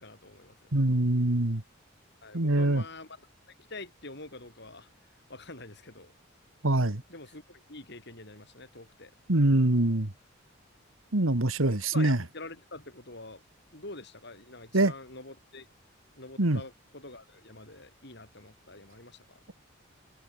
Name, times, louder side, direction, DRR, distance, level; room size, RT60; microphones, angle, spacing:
voice 1, 0.0-0.6 2.2-3.3 3.6-4.9 5.3-6.1 7.1-9.1 11.7-13.4 13.7-15.7 16.2-19.4, left 2 dB, 55° left, 5.9 m, -46 dB
voice 2, 0.7-1.6 2.3-2.8 6.6-7.0 9.3-10.1 11.1-12.2 14.7-14.9 16.4-16.6, right 1 dB, 80° right, 2.1 m, -24 dB
head